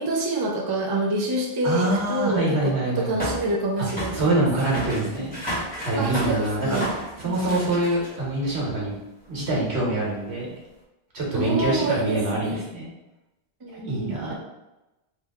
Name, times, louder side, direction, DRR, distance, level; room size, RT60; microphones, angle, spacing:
voice 1, 0.0-4.5 6.0-6.9 7.2-7.6 11.3-12.6 13.6-14.3, right 1 dB, 30° right, 0 dB, 0.5 m, -27 dB
voice 2, 1.6-3.1 4.1-5.4 5.8-6.8 7.2-9.0 9.3-10.6 11.1-12.9 13.7-14.3, right 2 dB, 80° right, -4 dB, 1.5 m, -25 dB
sound 1, 3.2-8.4 9.2-9.3 10.0-10.1, equal, 10° left, 1.3 m, -33 dB
3.5 x 2.8 x 3.5 m, 0.98 s
omnidirectional pair, 1.1 m